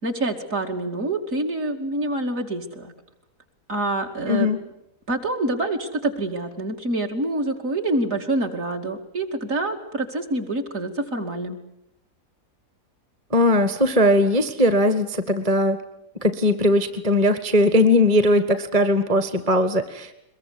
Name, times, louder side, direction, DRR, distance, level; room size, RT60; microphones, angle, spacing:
voice 1, 0.0-2.9 3.7-4.5 5.1-11.6, right 2 dB, 55° right, 2 dB, 3.0 m, -26 dB
voice 2, 4.3-4.6 13.3-15.8 16.2-20.1, left 1 dB, 25° right, 10 dB, 1.4 m, -19 dB
23.0 x 22.0 x 9.6 m, 0.77 s
omnidirectional pair, 1.7 m